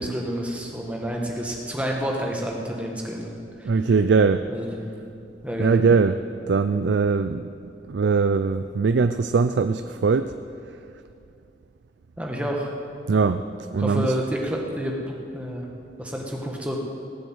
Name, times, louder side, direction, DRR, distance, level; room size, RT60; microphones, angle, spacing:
voice 1, 0.0-3.7 4.5-4.9 5.4-5.8 12.2-12.7 13.8-14.9 15.3-15.7 16.0-16.8, equal, 5° right, -1 dB, 1.5 m, -29 dB
voice 2, 3.7-4.5 5.6-7.4 7.9-10.3 13.1-13.4 13.7-14.2, right 4 dB, 80° right, 10 dB, 0.4 m, -21 dB
18.5 x 7.8 x 8.0 m, 2.5 s
head